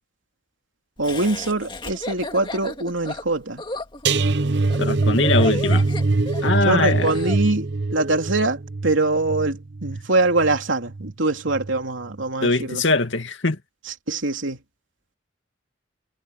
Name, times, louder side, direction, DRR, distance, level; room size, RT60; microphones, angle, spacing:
Laughter, 1.0-7.4, left 2 dB, 25° left, 2.3 m, -34 dB
voice 1, 1.0-3.6 6.6-12.8 14.1-14.6, right 2 dB, 80° right, 3.1 m, -23 dB
sound 1, 4.0-11.1 11.5-11.8 12.1-12.2, right 3 dB, 60° right, 0.8 m, -23 dB
voice 2, 4.8-5.8 6.4-7.1 12.4-13.6, left 3 dB, 75° left, 2.2 m, -21 dB
head